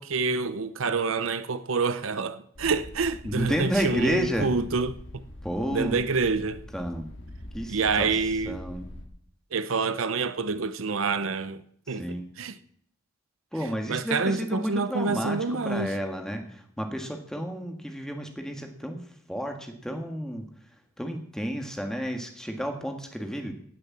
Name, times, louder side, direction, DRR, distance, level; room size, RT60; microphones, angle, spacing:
voice 1, 0.0-5.2 5.7-6.6 7.7-8.6 9.5-11.6 11.9-12.6 13.6-16.0, right 4 dB, 80° right, 0.7 m, -27 dB
sound 1, 2.5-9.1, left 1 dB, 60° left, 2.1 m, -43 dB
voice 2, 3.2-4.5 5.4-6.0 6.7-7.1 7.5-8.1 8.4-8.9 12.0-12.3 13.5-19.0 19.3-20.5 21.0-23.5, equal, 5° left, 1.7 m, -31 dB
17.0 x 6.7 x 7.3 m
head